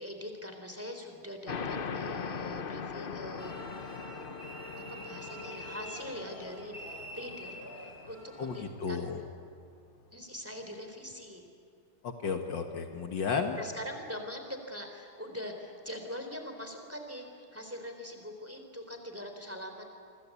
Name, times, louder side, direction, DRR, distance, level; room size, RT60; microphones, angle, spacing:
voice 1, 0.0-3.8 4.8-9.0 10.1-11.5 13.6-19.9, left 1 dB, 5° right, 4 dB, 3.5 m, -43 dB
sound 1, 1.5-8.6, left 5 dB, 45° left, 0.7 m, -41 dB
sound 2, 3.4-8.6, equal, 30° left, 2.8 m, -45 dB
voice 2, 8.4-9.2 12.0-13.6, left 5 dB, 70° left, 4 dB, 2.3 m, -33 dB
28.0 x 25.0 x 8.5 m, 2.3 s
omnidirectional pair, 2.1 m